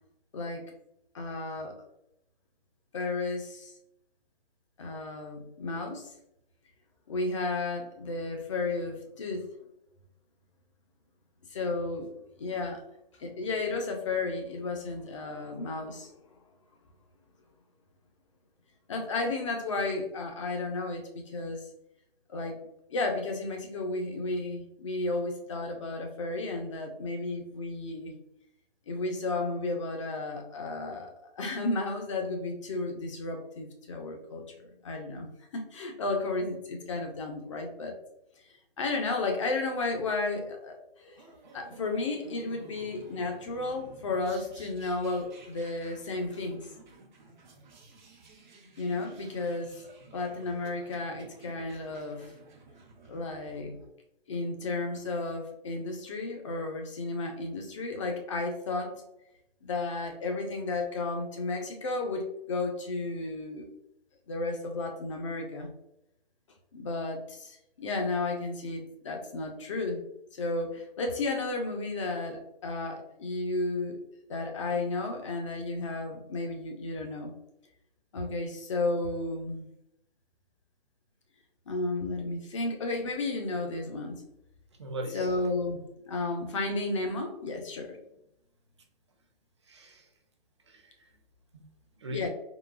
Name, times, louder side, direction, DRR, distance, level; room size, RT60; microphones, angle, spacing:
voice 1, 0.3-0.7 1.1-1.7 2.9-3.7 4.8-6.1 7.1-9.5 11.5-12.1 12.4-12.8 13.2-16.1 18.9-21.7 22.3-22.6 22.9-28.2 28.9-38.0 38.8-41.2 41.5-46.6 48.8-49.8 50.1-52.3 53.1-53.8 54.3-59.0 59.6-63.7 64.3-65.7 66.7-70.0 70.3-74.0 74.3-77.3 78.1-79.7 81.7-84.2 85.1-88.0 92.1-92.3, left 3 dB, 30° left, 3 dB, 0.5 m, -33 dB
sound 1, 41.2-53.9, right 3 dB, 50° right, 0.9 m, -53 dB
voice 2, 84.8-85.4 89.6-90.1 90.6-91.2 91.5-91.7 92.0-92.3, right 1 dB, 30° right, 3 dB, 0.4 m, -40 dB
3.8 x 2.3 x 2.4 m, 0.80 s
hypercardioid pair, 155°, 29 cm